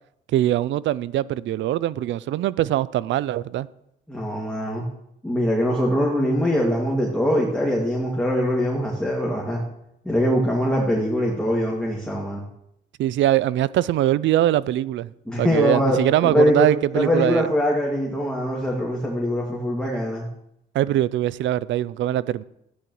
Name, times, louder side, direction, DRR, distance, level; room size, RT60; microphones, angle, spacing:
voice 1, 0.3-3.7 13.0-15.1 15.4-17.4 20.7-22.4, right 13 dB, 70° right, 0.4 m, -22 dB
voice 2, 4.1-4.8 5.2-9.6 10.0-12.4 15.3-16.0 16.2-16.7 16.9-20.3, equal, 5° left, 2.2 m, -22 dB
13.5 x 10.0 x 3.1 m
cardioid pair, 90°, 20 cm